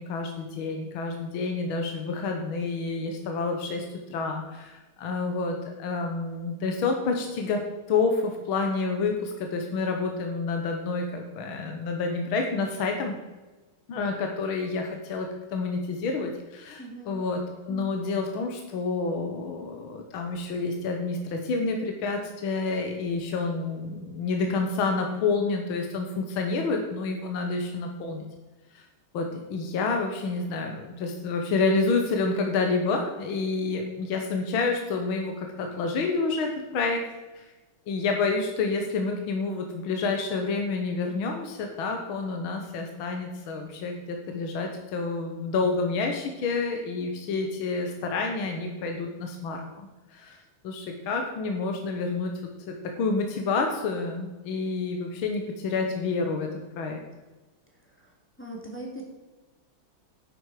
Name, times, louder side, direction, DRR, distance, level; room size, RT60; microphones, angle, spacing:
voice 1, 0.0-3.9 4.1-13.2 13.9-28.3 29.1-37.1 37.4-37.5 37.9-52.3 52.7-56.5 56.8-57.0, left 4 dB, 75° left, 3 dB, 2.0 m, -29 dB
voice 2, 16.8-17.1 58.0-58.1 58.4-59.0, right 1 dB, 5° left, -2 dB, 2.4 m, -39 dB
11.0 x 9.2 x 4.9 m, 1.2 s
omnidirectional pair, 2.3 m